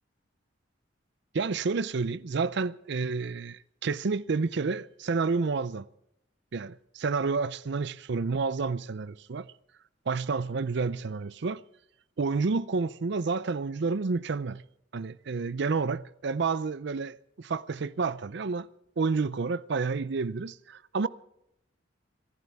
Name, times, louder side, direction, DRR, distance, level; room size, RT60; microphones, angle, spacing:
voice 1, 1.3-5.9 6.5-9.5 10.1-11.6 12.2-14.6 14.9-18.7 19.0-21.1, right 4 dB, 65° right, 0.5 m, -30 dB
26.0 x 15.0 x 3.5 m
head